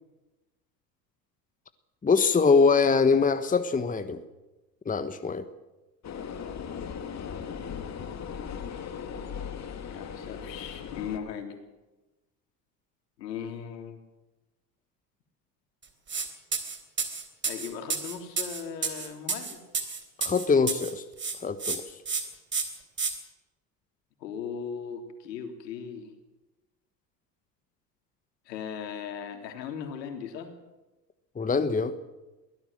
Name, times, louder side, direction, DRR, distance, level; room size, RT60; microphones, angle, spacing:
voice 1, 2.0-4.2 4.8-5.4 20.2-21.0 21.4-21.8 31.4-31.9, left 5 dB, 15° left, 11 dB, 1.3 m, -23 dB
sound 1, 6.0-11.2, left 7 dB, 30° left, 2.4 m, -38 dB
voice 2, 9.9-11.6 13.2-14.0 17.5-19.6 24.2-26.1 28.5-30.5, left 7 dB, 75° left, 5 dB, 3.6 m, -38 dB
sound 2, 16.1-16.3 16.5-20.9 21.2-21.8 22.1-22.2 22.5-23.1, right 5 dB, 20° right, 3.6 m, -30 dB
23.0 x 16.5 x 7.5 m, 1.1 s
hypercardioid pair, 75°, 50 cm